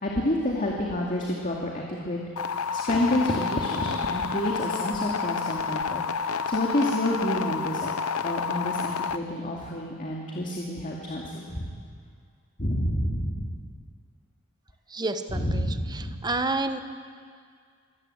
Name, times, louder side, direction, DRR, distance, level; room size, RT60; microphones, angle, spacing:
voice 1, 0.0-2.2 2.7-7.9 8.2-11.7 12.6-13.5 15.3-16.2, left 1 dB, 35° left, -2 dB, 2.3 m, -29 dB
sound 1, 2.4-9.2, left 5 dB, 75° left, 0.8 m, -29 dB
voice 2, 14.9-15.7 15.9-16.8, right 2 dB, 20° right, 9 dB, 1.0 m, -29 dB
24.0 x 17.5 x 8.0 m, 2.1 s
head